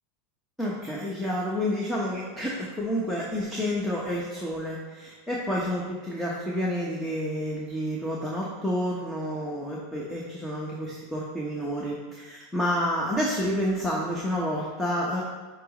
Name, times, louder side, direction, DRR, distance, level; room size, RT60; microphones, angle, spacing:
voice 1, 0.6-15.2, equal, 5° left, -5 dB, 1.1 m, -29 dB
9.2 x 3.1 x 5.1 m, 1.3 s
supercardioid pair, 125°, 0 cm